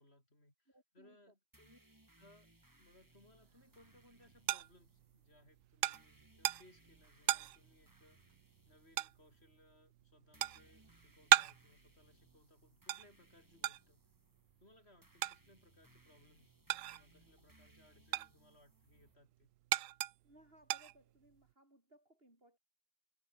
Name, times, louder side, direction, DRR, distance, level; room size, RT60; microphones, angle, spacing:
voice 1, 0.0-1.8 2.2-2.5 2.8-8.2 8.6-14.0 14.6-16.6 16.9-19.5, left 1 dB, 55° left, 8.4 m, -66 dB
voice 2, 0.7-1.3 18.1-18.2 20.2-22.6, right 1 dB, 50° right, 7.7 m, -65 dB
sound 1, 1.5-19.1, right 1 dB, 15° right, 2.0 m, -68 dB
sound 2, 3.5-17.3 17.6-21.5, right 14 dB, 85° right, 1.0 m, -38 dB
omnidirectional pair, 1.3 m